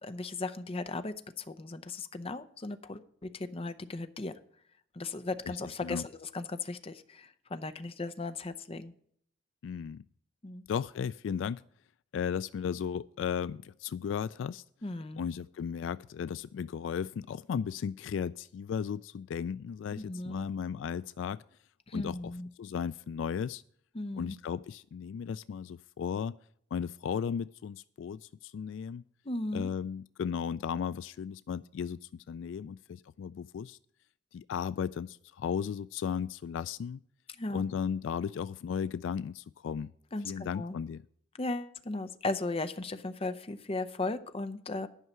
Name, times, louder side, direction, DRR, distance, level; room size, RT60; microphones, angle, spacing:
voice 1, 0.0-4.3 4.9-8.9 10.4-10.6 14.8-15.3 19.9-20.5 21.9-22.5 23.9-24.3 29.2-29.7 37.4-37.6 40.1-40.8 41.4-44.9, left 2 dB, 30° left, 10 dB, 0.7 m, -36 dB
voice 2, 5.4-6.1 9.6-10.0 10.7-11.6 12.1-14.6 15.2-21.4 21.9-22.3 22.6-23.6 24.1-26.4 26.7-29.0 29.5-33.8 34.3-37.0 37.5-39.9 40.2-41.0, left 7 dB, 70° left, 17 dB, 0.3 m, -35 dB
11.0 x 5.6 x 7.5 m, 0.64 s
head